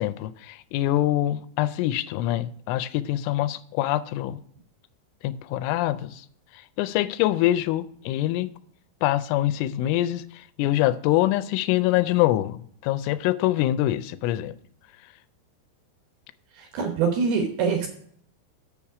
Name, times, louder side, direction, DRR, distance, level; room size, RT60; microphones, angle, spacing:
voice 1, 0.0-4.4 5.2-6.2 6.8-8.5 9.0-14.5, left 14 dB, 85° left, 3.0 m, -24 dB
voice 2, 16.5-17.9, right 5 dB, 75° right, 2.4 m, -24 dB
7.2 x 7.0 x 4.7 m
omnidirectional pair, 5.6 m